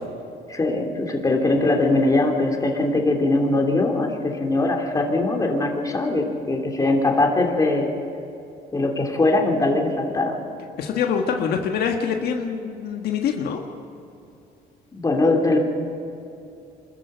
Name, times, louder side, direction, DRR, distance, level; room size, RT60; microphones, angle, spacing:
voice 1, 0.5-4.1 4.4-7.9 8.7-10.4 14.9-15.6, left 2 dB, 20° left, 2 dB, 3.2 m, -21 dB
voice 2, 10.8-13.6, left 7 dB, 70° left, 3 dB, 1.6 m, -25 dB
25.5 x 14.0 x 7.9 m, 2.7 s
cardioid pair, 110°, 17 cm